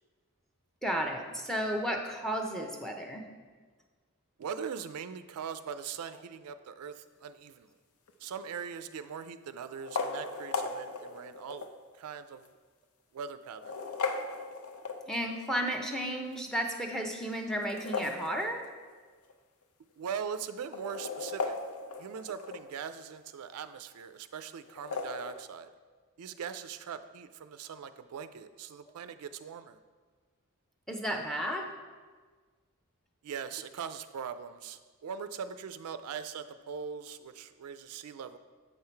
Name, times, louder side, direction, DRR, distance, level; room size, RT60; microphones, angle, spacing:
voice 1, 0.8-3.3 15.1-18.7 30.9-31.7, equal, ahead, 2 dB, 0.6 m, -33 dB
voice 2, 4.4-7.7 8.2-11.7 11.9-12.5 13.1-13.7 20.0-21.6 22.0-25.7 26.2-29.8 33.2-38.4, right 7 dB, 80° right, 11 dB, 0.4 m, -41 dB
sound 1, 8.1-8.5 9.7-11.8 12.4-12.5 13.4-15.4 17.5-19.0 19.3-19.4 19.6-19.7 20.5-22.8 24.7-25.3, left 4 dB, 75° left, 0.6 m, -37 dB
8.0 x 5.6 x 4.4 m, 1.5 s
head